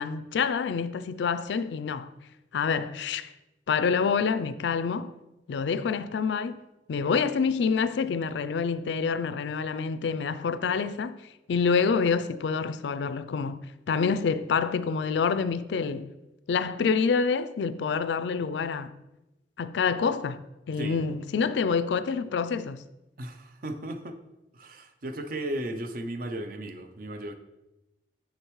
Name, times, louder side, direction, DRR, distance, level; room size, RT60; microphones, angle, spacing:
voice 1, 0.0-2.1 2.5-3.3 3.7-5.1 5.5-6.6 6.9-11.2 11.5-13.6 13.9-16.1 16.5-18.9 19.6-20.4 20.7-22.8, left 5 dB, 75° left, 0.4 m, -27 dB
voice 2, 23.2-24.2 24.5-27.3, right 1 dB, 50° right, 0.6 m, -35 dB
6.7 x 6.5 x 3.1 m
head